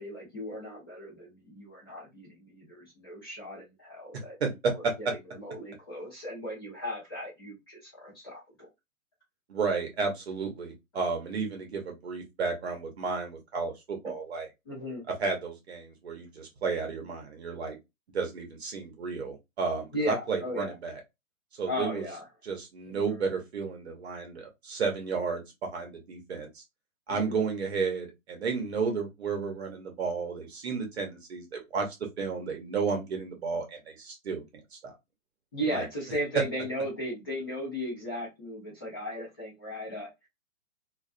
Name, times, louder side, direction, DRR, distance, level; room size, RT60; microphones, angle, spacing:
voice 1, 0.0-4.3 4.7-8.7 14.7-15.0 19.9-20.7 21.7-22.2 22.9-23.2 27.1-27.4 35.5-40.3, equal, 20° left, 0.6 m, -36 dB
voice 2, 4.4-4.9 9.5-14.5 15.2-17.8 18.1-21.0 21.5-22.1 22.4-26.6 27.1-31.9 32.2-34.9 35.7-35.8, right 5 dB, 50° right, 0.8 m, -32 dB
2.3 x 2.3 x 2.4 m
hypercardioid pair, 165°, 42 cm